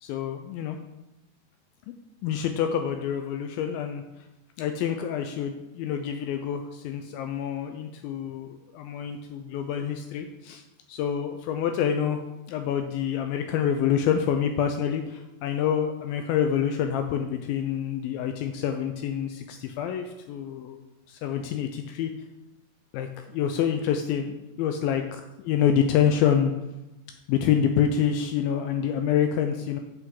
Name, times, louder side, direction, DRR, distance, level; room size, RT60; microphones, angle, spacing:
voice 1, 0.0-0.8 2.2-4.0 4.6-10.6 10.9-12.2 12.5-22.1 22.9-26.5 27.3-29.8, left 8 dB, 85° left, 6 dB, 2.3 m, -27 dB
9.4 x 6.4 x 3.8 m, 0.95 s
omnidirectional pair, 4.2 m